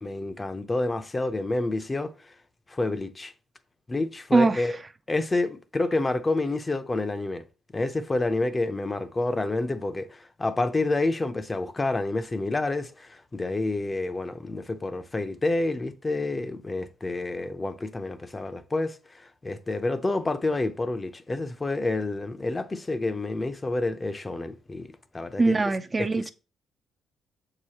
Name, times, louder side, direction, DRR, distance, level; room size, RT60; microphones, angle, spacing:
voice 1, 0.0-2.1 2.7-3.3 3.9-4.7 5.1-7.4 7.7-24.9 25.1-25.6 26.0-26.3, left 2 dB, 25° left, 0.6 m, -28 dB
voice 2, 4.3-4.6 25.4-26.3, right 3 dB, 25° right, 0.4 m, -22 dB
6.8 x 4.8 x 2.9 m
cardioid pair, 90°, 0 cm